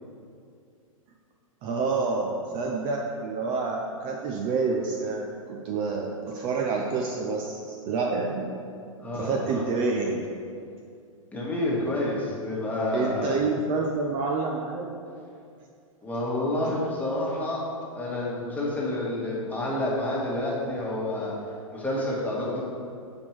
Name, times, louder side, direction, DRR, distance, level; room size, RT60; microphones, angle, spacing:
voice 1, 1.6-8.6 9.1-10.2 12.9-14.9, right 4 dB, 30° right, 0 dB, 0.6 m, -28 dB
voice 2, 9.0-9.6 11.3-13.4 16.0-17.6 17.9-21.3 21.7-22.6, left 1 dB, 10° left, -5 dB, 1.6 m, -29 dB
6.8 x 4.7 x 4.6 m, 2.4 s
hypercardioid pair, 115°, 18 cm